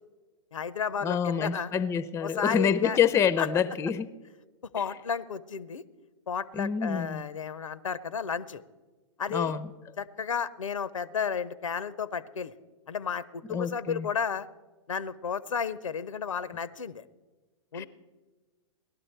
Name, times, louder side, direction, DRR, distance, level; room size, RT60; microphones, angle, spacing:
voice 1, 0.5-1.7 2.2-3.0 3.4-3.5 4.7-5.8 6.3-8.6 9.2-9.5 10.0-12.5 12.9-14.5 14.9-17.1 17.7-17.9, left 6 dB, 85° left, 0.6 m, -32 dB
voice 2, 1.0-4.1 6.5-7.2 9.3-9.7 13.5-14.1 17.7-17.9, left 7 dB, 15° left, 0.5 m, -27 dB
18.0 x 12.0 x 4.4 m
hypercardioid pair, 110°, 16 cm